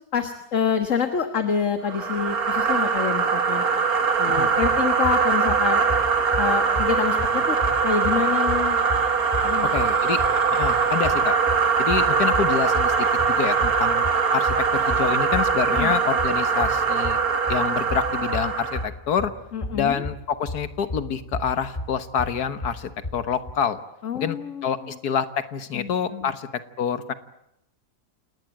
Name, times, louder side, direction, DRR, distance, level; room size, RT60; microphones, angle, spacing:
voice 1, 0.1-3.6 4.2-5.8 6.4-7.6 7.8-8.8 9.4-9.7 15.7-15.9 19.5-20.0 24.0-24.9 25.7-26.3, left 6 dB, 55° left, 8 dB, 1.8 m, -27 dB
sound 1, 1.9-18.9, right 5 dB, 70° right, 2.1 m, -22 dB
sound 2, 4.3-23.5, left 1 dB, 25° left, 2.5 m, -35 dB
voice 2, 9.6-10.2 10.5-11.4 11.8-14.1 14.3-17.2 17.5-19.3 19.7-23.8 24.1-24.4 24.6-26.5 26.8-27.1, left 7 dB, 85° left, 11 dB, 1.9 m, -27 dB
29.0 x 19.0 x 9.0 m, 0.78 s
omnidirectional pair, 1.6 m